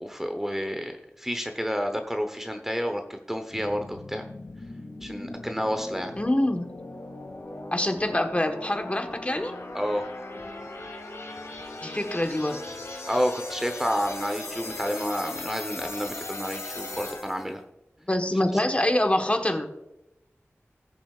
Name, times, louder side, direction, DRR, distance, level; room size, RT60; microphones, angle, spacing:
voice 1, 0.0-4.3 5.0-6.1 9.7-10.1 13.1-17.6, equal, 5° right, 5 dB, 0.9 m, -30 dB
sound 1, 3.5-17.5, left 2 dB, 80° left, 2.1 m, -39 dB
voice 2, 6.2-6.7 7.7-9.5 11.8-12.6 18.1-19.7, left 1 dB, 25° left, 5 dB, 1.3 m, -25 dB
19.0 x 7.0 x 2.4 m, 0.91 s
wide cardioid pair, 55°, 5 cm